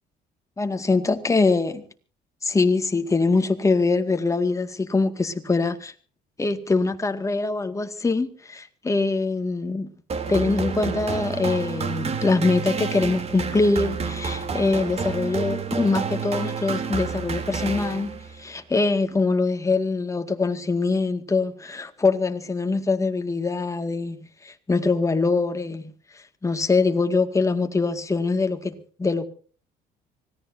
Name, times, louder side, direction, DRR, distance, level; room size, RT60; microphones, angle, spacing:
voice 1, 0.6-1.8 2.4-5.9 6.4-9.9 10.3-18.1 18.4-25.9 26.4-29.2, left 3 dB, 20° left, 2.0 m, -23 dB
sound 1, 10.1-18.4, right 5 dB, 40° right, 3.2 m, -29 dB
25.0 x 17.5 x 2.7 m
cardioid pair, 110°, 17 cm